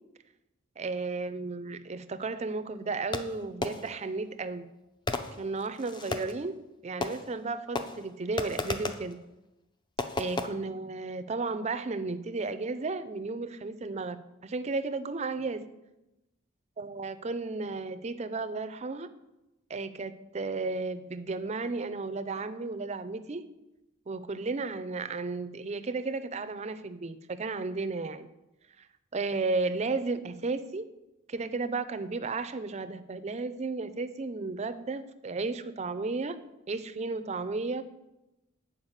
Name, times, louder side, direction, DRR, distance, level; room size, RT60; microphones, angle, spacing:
voice 1, 0.8-4.7 5.4-6.5 6.8-9.2 10.2-15.7 16.8-19.1 19.7-23.4 24.1-28.3 28.8-28.9 29.1-30.9 31.3-36.4 36.7-37.8, right 3 dB, 35° right, 11 dB, 0.4 m, -33 dB
Fireworks, 3.1-4.1 5.1-6.4 7.0-7.5 7.8-9.1 10.0-10.5, left 3 dB, 20° left, 0.5 m, -34 dB
8.1 x 4.7 x 7.2 m, 0.96 s
head